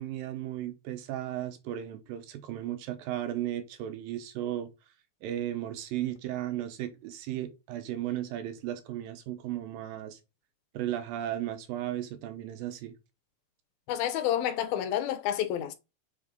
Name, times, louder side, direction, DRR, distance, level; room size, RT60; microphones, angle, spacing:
voice 1, 0.0-4.7 5.2-10.2 10.7-13.0, right 12 dB, 80° right, 2.6 m, -35 dB
voice 2, 13.9-15.8, left 11 dB, 85° left, 2.7 m, -29 dB
7.4 x 3.7 x 5.3 m
omnidirectional pair, 4.2 m